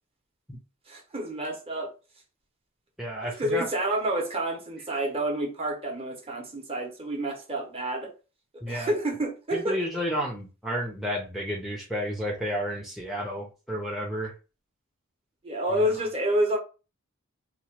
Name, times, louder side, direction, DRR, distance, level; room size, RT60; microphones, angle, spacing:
voice 1, 0.9-1.9 3.2-8.1 8.7-10.0 15.4-16.6, right 1 dB, 30° right, 0.8 m, -29 dB
voice 2, 3.0-3.7 8.6-8.9 9.5-14.3 15.7-15.9, equal, ahead, 0.5 m, -31 dB
2.9 x 2.1 x 2.9 m
head